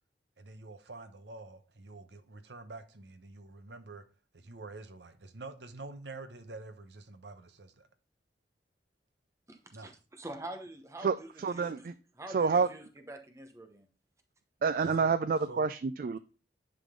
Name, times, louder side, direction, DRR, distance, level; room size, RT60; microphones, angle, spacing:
voice 1, 0.4-4.0 4.3-7.9 9.7-9.9 14.8-15.1 15.5-15.7, right 3 dB, 75° right, 1.0 m, -47 dB
voice 2, 9.5-13.9 14.9-15.0, right 1 dB, 15° right, 0.9 m, -46 dB
voice 3, 11.4-11.9 12.3-12.7 14.6-16.2, right 5 dB, 50° right, 0.3 m, -28 dB
10.0 x 3.7 x 3.7 m
head